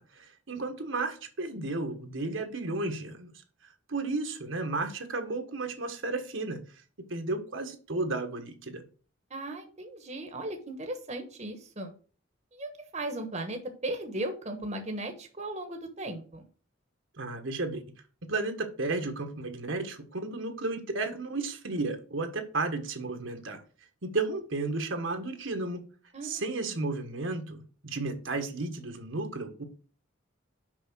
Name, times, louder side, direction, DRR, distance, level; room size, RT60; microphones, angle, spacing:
voice 1, 0.0-3.3 3.9-6.6 7.1-8.8 17.2-17.8 18.2-23.6 24.0-25.8 26.2-29.6, right 3 dB, 70° right, 1.4 m, -33 dB
voice 2, 9.3-11.9 12.5-16.4 26.1-26.4, right 1 dB, 35° right, 1.1 m, -37 dB
6.2 x 5.6 x 6.1 m
head